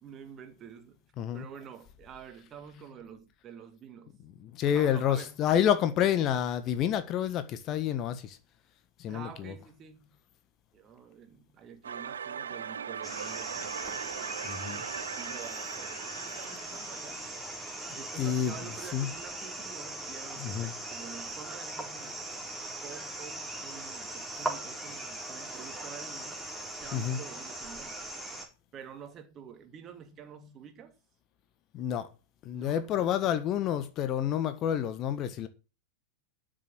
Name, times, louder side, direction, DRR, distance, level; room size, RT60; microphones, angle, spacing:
voice 1, 0.0-1.1 1.3-4.1 4.6-5.5 9.1-10.2 10.7-17.3 17.9-22.3 22.8-26.5 26.8-28.0 28.7-31.0 32.5-32.9, right 8 dB, 30° right, 2.7 m, -48 dB
voice 2, 4.4-8.4 9.0-9.5 14.4-14.8 18.2-18.5 18.9-19.1 20.4-20.7 26.9-27.2 31.7-32.1 32.4-35.5, left 10 dB, 35° left, 1.5 m, -29 dB
sound 1, 11.8-18.7, right 7 dB, 70° right, 0.6 m, -40 dB
sound 2, 13.0-28.5, right 2 dB, 5° right, 3.7 m, -40 dB
12.5 x 6.6 x 7.8 m
figure-of-eight pair, 90°, 0 cm